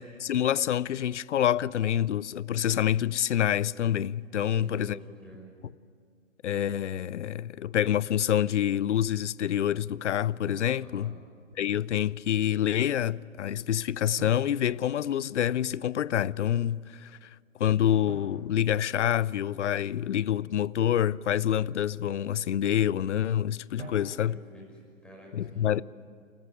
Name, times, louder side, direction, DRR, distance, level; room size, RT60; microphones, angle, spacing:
voice 1, 0.0-5.0 6.4-11.1 11.6-17.3 17.6-24.4 25.3-25.8, left 10 dB, 60° left, 0.6 m, -27 dB
voice 2, 4.5-5.5 10.8-11.1 24.3-25.8, right 1 dB, ahead, 5.8 m, -49 dB
Drum, 8.0-8.3 10.4-11.6 14.2-15.6 18.1-19.8 23.8-24.7, right 1 dB, 65° right, 5.0 m, -48 dB
28.5 x 14.0 x 9.8 m
figure-of-eight pair, 130°, 39 cm